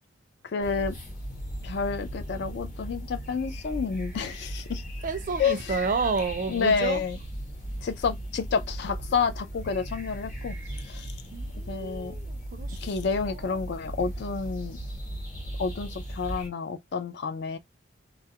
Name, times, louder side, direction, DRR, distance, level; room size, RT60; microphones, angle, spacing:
voice 1, 0.5-0.9 1.6-4.8 5.4-5.6 6.5-7.1 7.8-10.6 10.9-11.1 11.7-12.1 12.8-14.8 15.6-17.6, left 5 dB, 55° left, 0.4 m, -29 dB
sound 1, 0.6-16.5, right 1 dB, 40° left, 0.9 m, -37 dB
voice 2, 5.0-7.0 11.3-12.8 13.0-13.6, right 4 dB, 45° right, 0.4 m, -31 dB
2.3 x 2.0 x 2.7 m
head